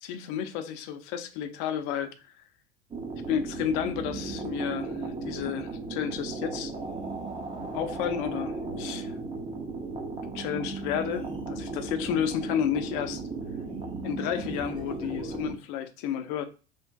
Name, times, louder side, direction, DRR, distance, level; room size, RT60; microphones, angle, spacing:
voice 1, 0.0-2.1 3.3-6.7 7.7-9.1 10.3-13.2 14.0-16.4, left 9 dB, 50° left, 0.5 m, -31 dB
sound 1, 2.9-15.5, right 3 dB, 15° right, 0.5 m, -36 dB
3.2 x 2.4 x 2.2 m
figure-of-eight pair, 80°, 33 cm